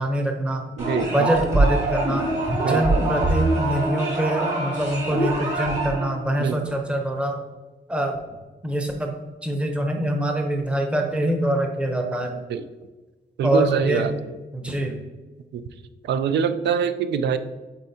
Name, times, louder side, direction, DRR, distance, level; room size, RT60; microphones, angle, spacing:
voice 1, 0.0-0.6 1.0-2.3 2.6-7.4 7.9-8.2 8.6-9.1 9.4-12.4 13.4-14.1 14.5-15.0, right 1 dB, 5° right, 3 dB, 0.7 m, -24 dB
sound 1, 0.8-6.1, right 2 dB, 40° right, 2.0 m, -23 dB
voice 2, 0.8-1.5 2.6-3.0 6.4-6.8 12.5-12.6 13.4-14.1 15.5-15.6 16.0-17.4, right 7 dB, 85° right, 11 dB, 0.5 m, -25 dB
7.9 x 4.5 x 2.7 m, 1.2 s
wide cardioid pair, 165°, 17 cm